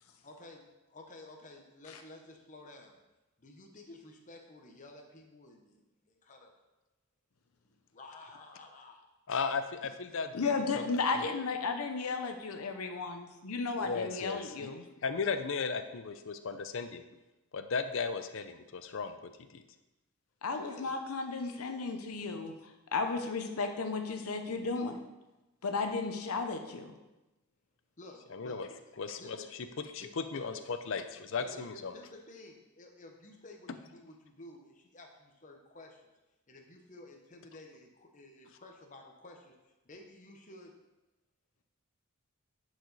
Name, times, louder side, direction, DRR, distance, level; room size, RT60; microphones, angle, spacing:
voice 1, 0.2-3.0 3.4-5.8 6.1-6.5 7.9-9.1 20.5-21.0 28.0-28.8 29.2-29.5 30.0-30.6 31.4-36.1 36.5-40.8, left 2 dB, 35° left, 3 dB, 1.0 m, -52 dB
voice 2, 9.3-10.8 13.8-14.7 15.0-17.0 17.5-19.6 28.3-28.7 29.0-29.4 29.9-31.9, left 5 dB, 60° left, 9 dB, 0.5 m, -36 dB
voice 3, 10.3-14.8 20.4-25.0 25.6-26.9, left 4 dB, 90° left, 5 dB, 0.8 m, -34 dB
10.5 x 4.9 x 4.1 m, 1.0 s
head